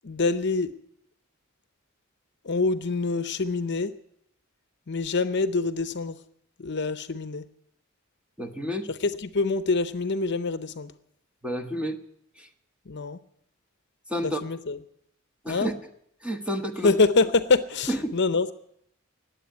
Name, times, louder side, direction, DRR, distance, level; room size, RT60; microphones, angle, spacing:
voice 1, 0.0-0.7 2.4-3.9 4.9-6.2 6.6-7.4 9.3-10.9 12.9-13.2 14.2-14.8 15.5-15.7 16.8-18.5, left 3 dB, 55° left, 12 dB, 0.7 m, -25 dB
voice 2, 8.4-8.9 11.4-12.0 12.4-12.5 14.1-14.4 15.4-15.7 16.2-17.0 17.9-18.2, equal, 5° right, 6 dB, 1.2 m, -30 dB
19.5 x 8.0 x 9.3 m, 0.73 s
head